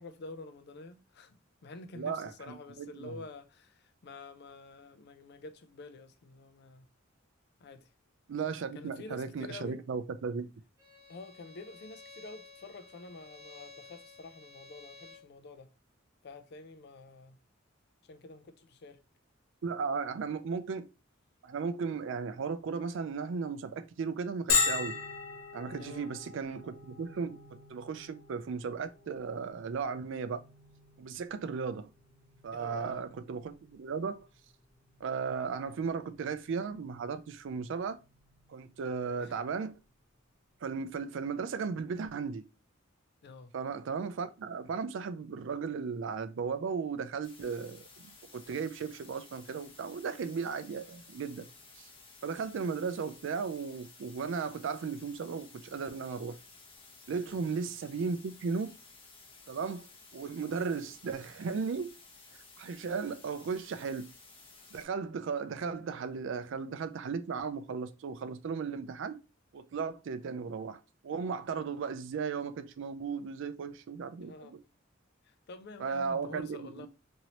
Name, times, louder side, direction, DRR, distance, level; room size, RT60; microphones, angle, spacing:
voice 1, 0.0-6.9 7.6-7.9 8.7-9.8 11.1-15.7 16.2-17.4 18.0-19.0 25.8-26.1 32.5-33.1 39.2-39.4 43.2-43.5 57.3-57.5 74.2-74.6 75.2-76.9, left 3 dB, 55° left, 0.4 m, -48 dB
voice 2, 1.9-3.2 8.3-10.5 19.6-20.9 21.4-25.0 25.5-27.4 27.7-30.4 31.0-31.9 32.4-34.3 35.0-38.0 38.5-39.7 40.6-42.4 43.5-51.5 51.8-51.9 52.2-56.4 57.1-58.7 59.5-59.9 60.1-62.0 62.6-64.1 64.7-69.2 69.5-74.6 75.8-76.9, right 5 dB, 65° right, 0.4 m, -36 dB
Bowed string instrument, 10.8-15.3, left 3 dB, 15° right, 1.0 m, -53 dB
Bell, 24.5-39.9, left 5 dB, 85° left, 0.8 m, -39 dB
sound 1, 47.2-64.8, left 3 dB, 30° left, 0.7 m, -55 dB
3.0 x 2.7 x 2.8 m
head